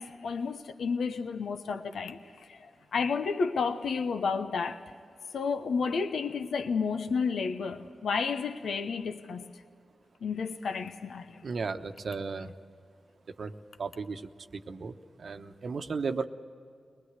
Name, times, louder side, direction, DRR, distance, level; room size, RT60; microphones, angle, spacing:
voice 1, 0.0-2.2 2.5-4.8 5.3-9.5 10.2-11.3, left 5 dB, 80° left, 0.9 m, -31 dB
voice 2, 11.4-12.5 13.3-13.5 13.8-16.3, right 4 dB, 65° right, 1.0 m, -35 dB
22.5 x 20.0 x 8.1 m
cardioid pair, 45°, 0 cm